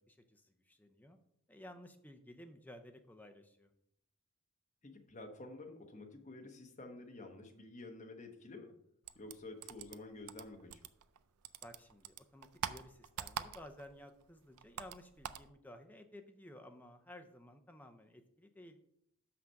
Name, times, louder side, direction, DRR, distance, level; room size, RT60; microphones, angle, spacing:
voice 1, 0.1-1.2 1.5-3.7 11.6-18.8, left 1 dB, 5° left, 6 dB, 0.5 m, -55 dB
voice 2, 4.8-8.7 9.1-10.8, left 2 dB, 30° left, 3 dB, 1.2 m, -50 dB
sound 1, 9.0-11.2 11.4-13.9 14.2-15.5, right 8 dB, 85° right, 0.5 m, -44 dB
5.9 x 5.9 x 6.3 m, 0.74 s
head